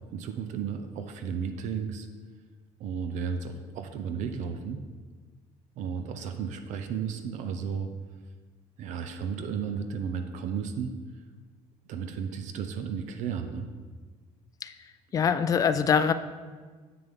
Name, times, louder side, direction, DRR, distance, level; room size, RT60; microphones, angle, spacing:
voice 1, 0.1-2.1 2.8-4.8 5.8-7.9 8.8-10.9 11.9-13.7, right 6 dB, 65° right, 7 dB, 0.6 m, -33 dB
voice 2, 15.1-16.1, left 7 dB, 25° left, 11 dB, 0.3 m, -23 dB
6.9 x 6.6 x 3.6 m, 1.5 s
cardioid pair, 125°, 13 cm